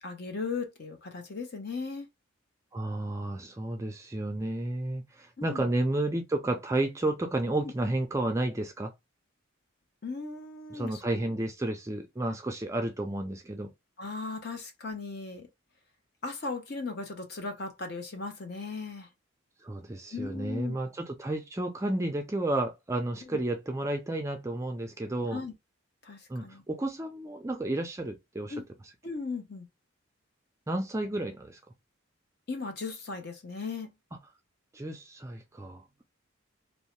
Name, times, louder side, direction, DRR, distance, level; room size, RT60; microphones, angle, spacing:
voice 1, 0.0-2.1 5.4-5.7 7.6-7.7 10.0-11.3 12.2-12.3 14.0-15.5 16.2-19.1 20.1-20.8 23.3-23.4 25.3-25.5 26.0-26.6 28.5-28.6 29.0-29.7 32.5-33.9, left 4 dB, 50° left, 0.8 m, -37 dB
voice 2, 2.7-8.9 10.7-13.7 19.6-25.4 26.3-28.6 30.7-31.6 34.7-35.8, right 1 dB, 15° right, 0.4 m, -32 dB
2.6 x 2.1 x 3.0 m
head